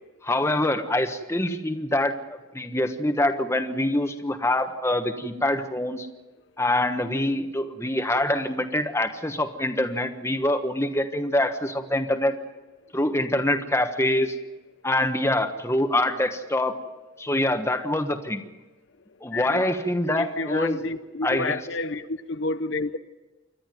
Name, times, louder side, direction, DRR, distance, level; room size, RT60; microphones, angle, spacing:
voice 1, 0.2-6.1 6.6-12.3 12.9-14.4 14.8-16.7 17.2-18.4 19.2-20.8 21.2-21.6, left 1 dB, 15° left, 1.2 m, -25 dB
voice 2, 19.3-19.6 20.2-23.0, left 3 dB, 60° left, 0.7 m, -30 dB
28.0 x 12.5 x 9.2 m
head